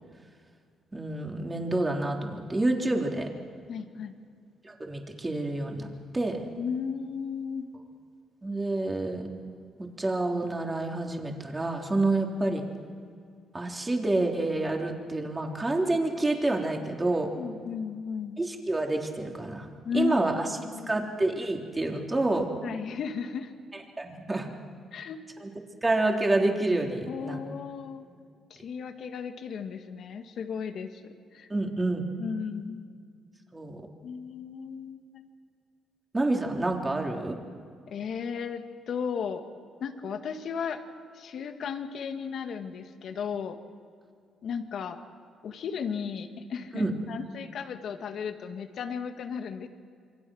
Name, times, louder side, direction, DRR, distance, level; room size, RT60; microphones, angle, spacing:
voice 1, 0.9-3.3 4.8-6.4 8.4-9.3 9.8-12.6 13.5-17.3 18.4-19.7 19.9-20.5 20.9-22.5 24.0-24.5 25.4-25.5 25.8-27.4 31.5-32.0 33.5-33.8 36.1-37.4 46.7-46.9, right 2 dB, 20° right, 1 dB, 3.6 m, -28 dB
voice 2, 3.7-4.1 6.6-7.7 12.5-12.6 17.4-18.4 19.8-20.2 20.6-21.1 22.6-23.5 24.9-25.2 27.1-28.1 28.5-31.5 32.2-32.8 34.0-35.3 37.9-39.4 39.8-40.8 41.1-43.6 44.4-45.0 45.4-49.7, left 6 dB, 65° left, 6 dB, 1.9 m, -35 dB
27.5 x 24.0 x 6.4 m, 2.2 s
cardioid pair, 90°, 0 cm